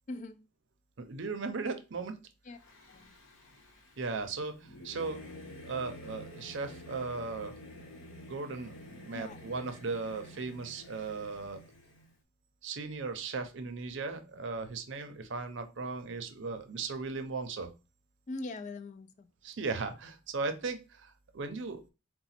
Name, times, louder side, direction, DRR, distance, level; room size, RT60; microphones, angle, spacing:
voice 1, 0.1-0.4 2.5-2.6 2.9-3.1 9.1-9.4 18.3-19.3, left 2 dB, 35° left, 10 dB, 0.3 m, -41 dB
voice 2, 1.0-2.2 4.0-5.2 5.6-7.5 8.3-11.6 12.6-17.7 19.4-21.9, right 4 dB, 60° right, 7 dB, 0.6 m, -37 dB
Singing / Musical instrument, 2.6-12.1, left 1 dB, 80° left, 0.9 m, -50 dB
4.0 x 2.2 x 4.2 m, 0.30 s
head